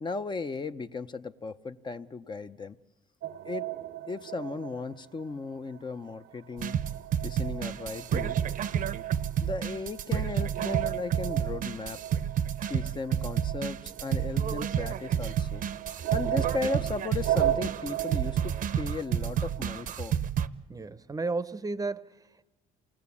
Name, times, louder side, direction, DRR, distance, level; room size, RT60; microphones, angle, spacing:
voice 1, 0.0-2.8 3.4-3.7 4.1-6.7 7.2-8.4 9.4-12.0 12.7-15.6 16.1-20.1, left 4 dB, 25° left, 0.7 m, -36 dB
sound 1, 3.2-5.8 6.0-19.9, right 12 dB, 90° right, 1.1 m, -36 dB
sound 2, 6.6-20.5, right 9 dB, 55° right, 0.8 m, -30 dB
voice 2, 20.7-22.5, right 3 dB, 20° right, 0.8 m, -34 dB
28.0 x 19.5 x 8.5 m
cardioid pair, 110°, 17 cm